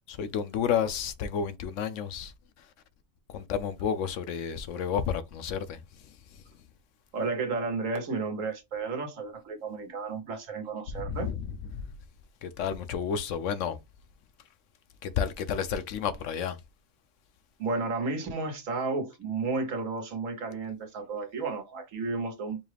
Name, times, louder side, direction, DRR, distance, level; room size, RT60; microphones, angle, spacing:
voice 1, 0.1-2.7 3.3-6.4 10.9-11.9 12.4-13.8 15.0-16.6, left 7 dB, 75° left, 0.9 m, -31 dB
voice 2, 7.1-11.3 17.6-22.6, right 4 dB, 75° right, 1.5 m, -32 dB
4.8 x 2.4 x 3.2 m
omnidirectional pair, 1.4 m